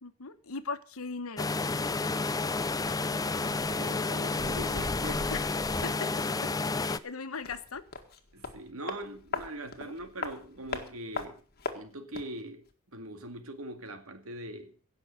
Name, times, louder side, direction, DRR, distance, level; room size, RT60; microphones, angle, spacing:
voice 1, 0.0-1.5 5.3-5.5 5.8-6.1 6.4-6.5 6.8-7.8 9.8-9.9, left 4 dB, 85° left, 1.2 m, -38 dB
sound 1, 1.4-7.0, left 3 dB, 15° left, 0.5 m, -30 dB
voice 2, 3.3-5.3 5.8-6.0 8.3-11.4 11.7-14.7, right 1 dB, 80° right, 2.2 m, -42 dB
sound 2, 7.4-12.4 12.7-12.8, left 4 dB, 45° left, 1.8 m, -40 dB
17.0 x 6.4 x 7.7 m
head